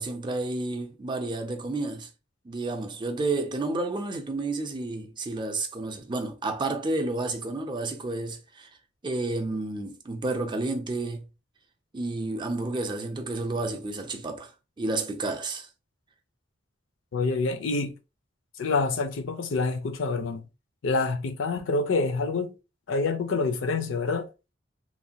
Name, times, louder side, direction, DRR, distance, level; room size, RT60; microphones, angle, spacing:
voice 1, 0.0-2.1 2.4-8.7 9.0-11.3 11.9-14.5 14.8-15.7, right 2 dB, 25° right, 0.5 m, -31 dB
voice 2, 17.1-18.0 18.6-20.5 20.8-22.6 22.9-24.3, left 3 dB, 75° left, 0.5 m, -27 dB
3.2 x 2.2 x 2.7 m
head